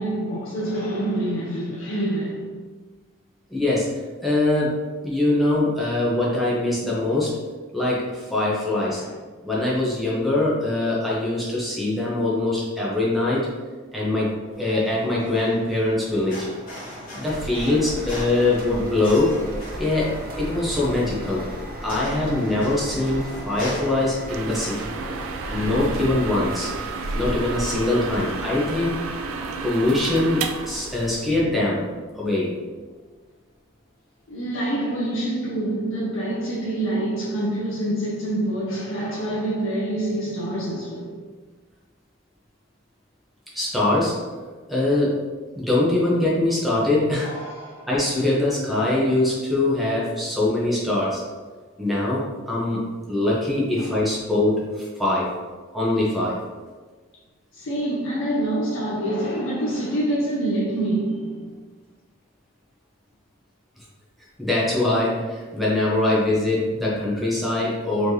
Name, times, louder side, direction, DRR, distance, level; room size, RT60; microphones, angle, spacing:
voice 1, 0.0-2.6 8.8-9.1 18.3-18.4 22.1-22.2 25.4-25.8 34.3-41.2 47.2-47.9 53.8-54.0 57.5-61.5, right 1 dB, 80° left, 0.6 m, -26 dB
voice 2, 3.5-3.9 4.2-4.8 5.0-7.3 7.7-9.0 9.4-13.5 13.9-16.5 17.1-19.3 19.8-21.4 21.8-24.9 25.5-26.7 27.1-29.0 29.6-31.9 32.1-32.5 43.5-44.2 44.7-45.2 45.5-47.3 47.9-51.2 51.8-55.3 55.7-56.4 64.4-68.1, left 2 dB, ahead, 0.8 m, -23 dB
sound 1, 14.5-26.0, equal, 40° left, 1.1 m, -40 dB
sound 2, 17.2-32.7, equal, 45° right, 0.6 m, -37 dB
sound 3, 24.3-31.4, right 4 dB, 90° right, 0.3 m, -31 dB
4.2 x 3.3 x 2.8 m
head